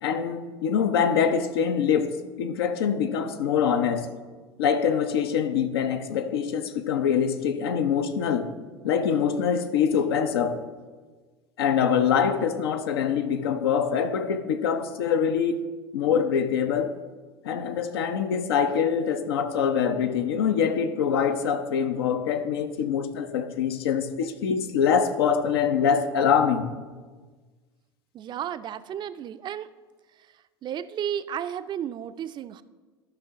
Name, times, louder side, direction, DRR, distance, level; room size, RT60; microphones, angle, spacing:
voice 1, 0.0-4.1 4.6-8.5 8.8-10.6 11.6-15.6 15.9-17.0 17.4-26.7, left 7 dB, 75° left, 0.7 m, -24 dB
voice 2, 28.1-29.7 30.6-32.6, right 9 dB, 35° right, 0.4 m, -33 dB
13.0 x 5.9 x 3.6 m
hypercardioid pair, 80°, 13 cm